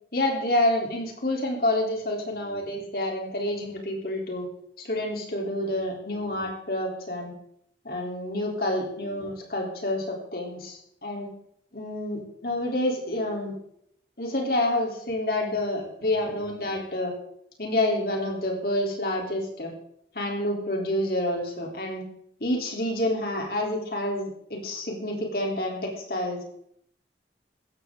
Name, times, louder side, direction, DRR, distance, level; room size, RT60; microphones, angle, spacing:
voice 1, 0.1-4.5 4.8-7.3 7.8-11.3 11.7-13.5 14.2-17.1 17.6-19.7 20.1-22.0 22.4-26.4, left 1 dB, 55° left, 0 dB, 3.7 m, -28 dB
15.5 x 13.5 x 3.9 m, 0.70 s
head